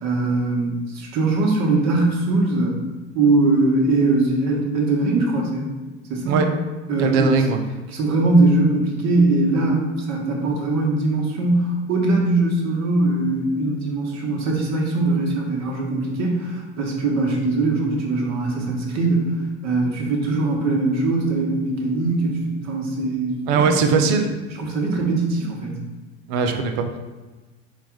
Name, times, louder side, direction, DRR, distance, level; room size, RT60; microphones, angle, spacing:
voice 1, 0.0-2.8 3.1-5.7 6.1-6.5 6.9-7.3 7.9-19.3 19.6-24.1 24.6-25.8, right 2 dB, 50° right, -1 dB, 1.2 m, -21 dB
voice 2, 7.0-7.6 23.5-24.3 26.3-27.0, right 5 dB, 70° right, 5 dB, 0.7 m, -20 dB
4.6 x 2.4 x 4.6 m, 1.2 s
hypercardioid pair, 90°, 34 cm